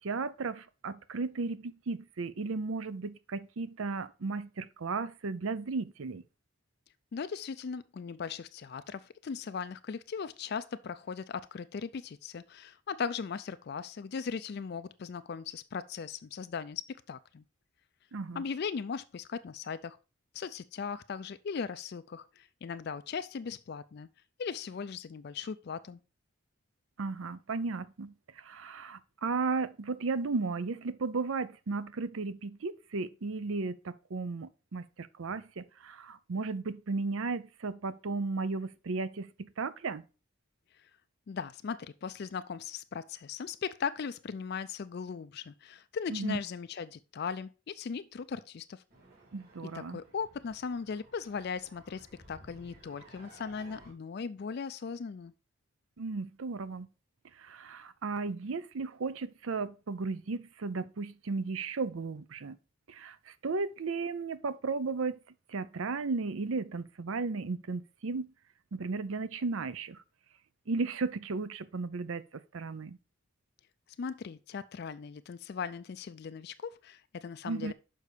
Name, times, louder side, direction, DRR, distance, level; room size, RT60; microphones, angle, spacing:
voice 1, 0.0-6.2 18.1-18.4 27.0-40.0 46.1-46.4 49.3-50.0 56.0-56.9 57.4-62.6 62.9-65.2 65.5-68.3 68.7-70.0 70.7-72.2 72.5-73.0 77.4-77.7, right 4 dB, 75° right, 0.6 m, -35 dB
voice 2, 7.1-17.4 18.3-20.0 20.3-24.1 24.4-26.0 40.8-40.9 41.3-48.8 49.7-55.3 74.0-77.7, left 6 dB, 50° left, 0.4 m, -38 dB
sound 1, 48.9-53.9, right 2 dB, 45° right, 3.9 m, -56 dB
6.5 x 5.5 x 4.9 m
head